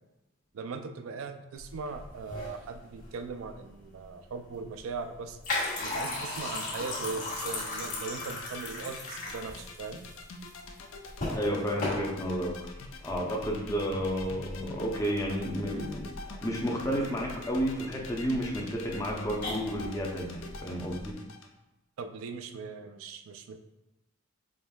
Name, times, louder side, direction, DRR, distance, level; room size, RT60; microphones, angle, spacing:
voice 1, 0.5-5.4 5.8-10.0 22.0-23.6, right 4 dB, 70° right, 8 dB, 0.4 m, -39 dB
sound 1, 1.6-21.1, left 2 dB, 40° left, 1.3 m, -38 dB
sound 2, 6.7-21.5, left 4 dB, 65° left, 0.5 m, -45 dB
voice 2, 11.3-12.5 13.0-16.1 16.4-21.2, equal, 15° left, -2 dB, 0.6 m, -31 dB
5.0 x 3.1 x 2.3 m, 0.98 s
head